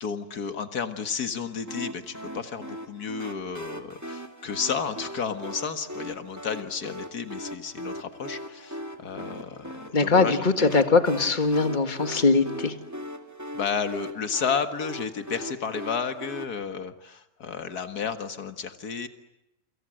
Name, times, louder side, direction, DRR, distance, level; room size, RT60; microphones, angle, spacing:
voice 1, 0.0-10.8 13.5-19.1, left 6 dB, 85° left, 9 dB, 2.2 m, -32 dB
sound 1, 1.7-16.5, equal, 10° right, 2.4 m, -39 dB
voice 2, 9.9-12.8, left 4 dB, 30° left, 8 dB, 2.0 m, -21 dB
28.0 x 26.0 x 7.8 m, 0.88 s
omnidirectional pair, 1.6 m